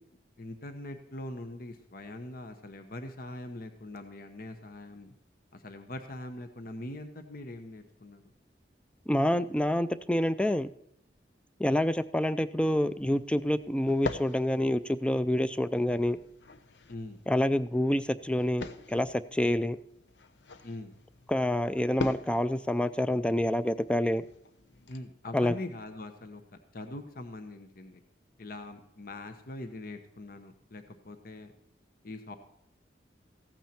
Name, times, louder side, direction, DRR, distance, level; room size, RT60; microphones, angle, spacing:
voice 1, 0.4-5.1 5.5-8.2 16.9-17.2 20.6-20.9 24.9-26.4 26.7-28.0 28.4-31.5 32.0-32.4, left 2 dB, 55° left, 7 dB, 1.0 m, -42 dB
voice 2, 9.1-10.7 11.6-16.2 17.3-19.8 21.3-24.2 25.3-25.5, left 1 dB, 5° left, 14 dB, 0.4 m, -27 dB
Pillow hit impact, 12.6-25.0, left 3 dB, 80° left, 0.8 m, -44 dB
15.0 x 9.0 x 4.3 m, 0.75 s
head